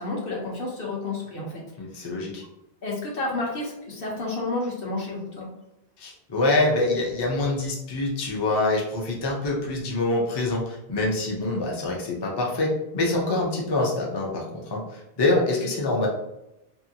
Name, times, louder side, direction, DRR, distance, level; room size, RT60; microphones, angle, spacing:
voice 1, 0.0-1.6 1.9-2.1 2.8-5.5, left 2 dB, 65° left, -3 dB, 1.0 m, -30 dB
voice 2, 1.8-2.4 6.0-16.1, left 2 dB, 35° left, -2 dB, 0.4 m, -25 dB
2.7 x 2.6 x 2.7 m, 0.89 s
omnidirectional pair, 1.1 m